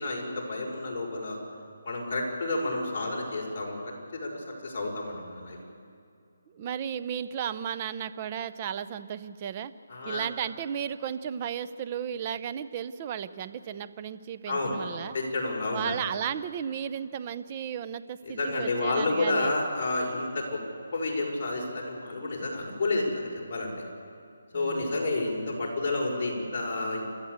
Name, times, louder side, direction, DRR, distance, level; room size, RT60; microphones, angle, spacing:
voice 1, 0.0-1.4 1.8-3.8 4.1-5.6 9.9-10.2 14.5-14.8 15.1-16.0 18.2-20.6 20.9-23.7 24.5-27.1, left 2 dB, 35° left, -3 dB, 5.6 m, -30 dB
voice 2, 6.5-9.7 10.0-15.1 15.7-19.5 24.5-25.0, right 8 dB, 25° right, 12 dB, 0.7 m, -34 dB
29.5 x 13.0 x 8.1 m, 2.4 s
hypercardioid pair, 165°, 0 cm